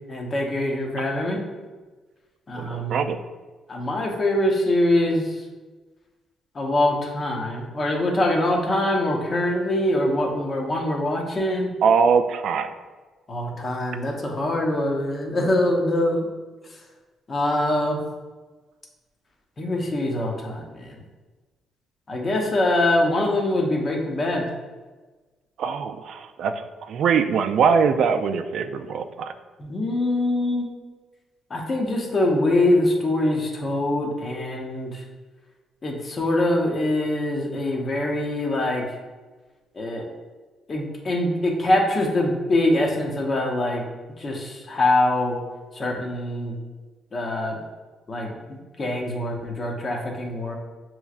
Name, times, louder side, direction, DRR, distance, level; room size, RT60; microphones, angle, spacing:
voice 1, 0.1-1.4 2.5-3.0 3.7-5.4 6.5-11.7 13.3-16.3 17.3-18.0 19.6-21.0 22.1-24.5 29.6-30.7 31.5-35.0 35.8-38.8 39.7-40.1 40.7-43.8 44.2-45.4 45.7-46.6 47.1-47.6 48.1-50.5, left 1 dB, 40° left, 0 dB, 0.9 m, -23 dB
voice 2, 2.5-3.2 11.8-12.7 25.6-29.3, right 6 dB, 70° right, 9 dB, 0.3 m, -22 dB
6.8 x 3.1 x 2.4 m, 1.3 s
cardioid pair, 90°, 0 cm